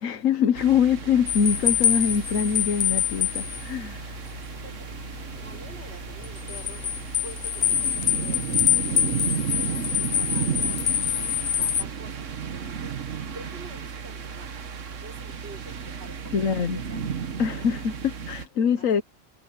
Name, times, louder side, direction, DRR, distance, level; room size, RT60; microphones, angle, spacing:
voice 1, 0.0-4.2 16.3-16.8 17.4-19.0, left 7 dB, 90° left, 1.4 m, -24 dB
sound 1, 0.5-18.5, right 6 dB, 70° right, 1.5 m, -34 dB
sound 2, 1.3-11.8, left 9 dB, 60° left, 1.0 m, -26 dB
voice 2, 4.5-9.1 9.5-10.6 11.0-13.0 13.3-14.5 14.9-17.8 18.8-18.9, right 1 dB, 55° right, 4.7 m, -47 dB
omnidirectional pair, 1.3 m